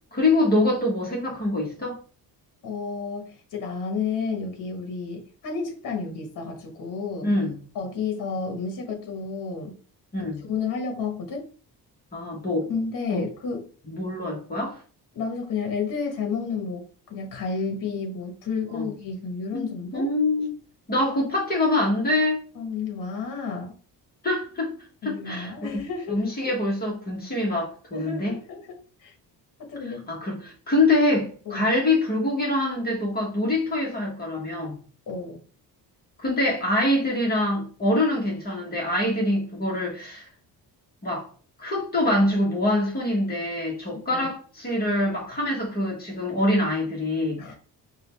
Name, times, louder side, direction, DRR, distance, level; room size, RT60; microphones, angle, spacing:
voice 1, 0.1-2.0 7.2-7.6 10.1-10.4 12.1-12.7 13.1-13.2 13.8-14.8 18.7-18.9 19.5-20.5 20.9-22.4 24.2-24.7 25.0-25.8 26.1-28.4 29.8-34.8 36.2-40.3 41.0-41.3 41.6-47.4, left 1 dB, 25° left, 1.2 m, -25 dB
voice 2, 2.6-7.3 7.7-9.8 10.2-11.4 12.7-13.6 15.1-16.8 17.1-20.0 22.5-23.7 25.0-26.2 27.9-28.6 29.0-29.1 29.6-30.1 31.5-31.7 35.1-35.4 44.1-44.3 47.4-47.5, left 5 dB, 55° left, 1.2 m, -31 dB
4.9 x 2.4 x 3.3 m
cardioid pair, 160°, 39 cm